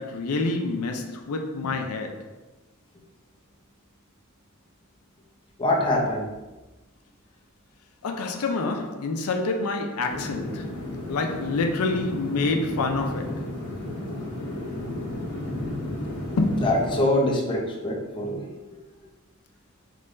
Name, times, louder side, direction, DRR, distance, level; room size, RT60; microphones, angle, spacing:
voice 1, 0.0-2.4 8.0-10.7 11.1-13.5 16.4-16.6, left 3 dB, 90° left, 0.5 m, -27 dB
voice 2, 5.6-6.2 16.6-18.4, left 1 dB, 25° left, 0.7 m, -24 dB
sound 1, 10.1-17.0, left 1 dB, 55° left, 1.4 m, -33 dB
5.3 x 3.2 x 2.6 m
head